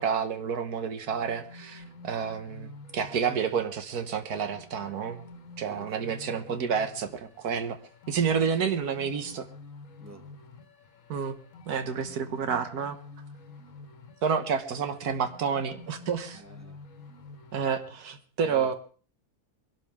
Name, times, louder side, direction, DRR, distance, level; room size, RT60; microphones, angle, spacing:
voice 1, 0.0-5.2 5.6-7.8 8.1-9.5 11.1-11.4 11.7-13.0 14.2-16.4 17.5-18.7, right 6 dB, 85° right, 1.6 m, -29 dB
sound 1, 1.1-17.9, left 3 dB, 60° left, 1.5 m, -49 dB
voice 2, 5.7-6.1 10.0-10.3 16.3-16.8 18.4-18.7, right 1 dB, 10° right, 1.7 m, -49 dB
22.5 x 12.0 x 3.5 m
omnidirectional pair, 1.6 m